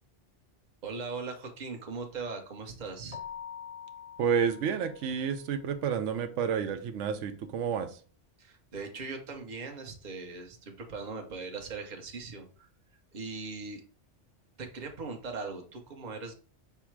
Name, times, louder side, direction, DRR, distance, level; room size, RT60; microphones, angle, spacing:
voice 1, 0.8-3.2 8.4-12.7 13.1-13.8 14.6-16.3, right 4 dB, 40° right, 3 dB, 0.9 m, -40 dB
Keyboard (musical), 3.1-5.6, left 8 dB, 50° left, 0.4 m, -45 dB
voice 2, 4.2-7.9, right 7 dB, 90° right, 8 dB, 0.9 m, -30 dB
5.6 x 2.1 x 4.5 m, 0.40 s
omnidirectional pair, 1.2 m